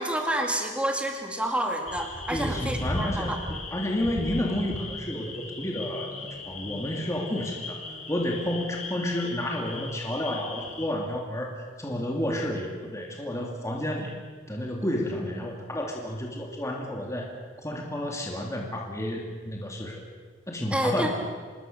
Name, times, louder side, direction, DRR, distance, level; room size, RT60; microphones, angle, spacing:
voice 1, 0.0-3.4 20.7-21.1, right 1 dB, 5° right, 3 dB, 2.2 m, -28 dB
sound 1, 1.9-10.8, left 2 dB, 40° left, 4.3 m, -37 dB
voice 2, 2.3-14.1 14.5-17.3 17.6-20.0 20.5-21.1, left 1 dB, 15° left, 0 dB, 2.6 m, -31 dB
27.0 x 20.0 x 6.8 m, 1.5 s
head